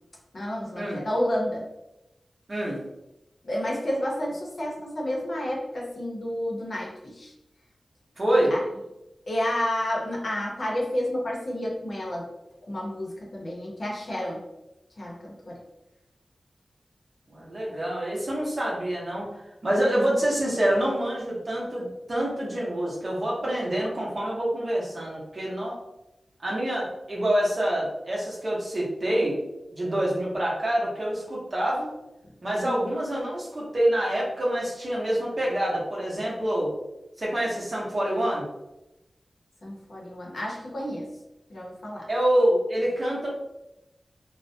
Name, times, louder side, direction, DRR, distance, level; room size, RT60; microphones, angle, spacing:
voice 1, 0.3-1.6 3.4-7.3 8.5-8.6 9.3-12.3 12.7-14.4 15.0-15.6 32.6-32.9 39.6-41.1 41.5-42.1, left 1 dB, 60° left, -3 dB, 0.7 m, -30 dB
voice 2, 2.5-2.8 8.2-8.5 17.3-19.3 19.6-25.8 26.4-29.4 29.7-31.9 32.4-36.7 37.2-38.5 42.1-43.3, right 1 dB, 45° right, -4 dB, 0.7 m, -26 dB
2.3 x 2.0 x 2.6 m, 0.92 s
wide cardioid pair, 90°, 0 cm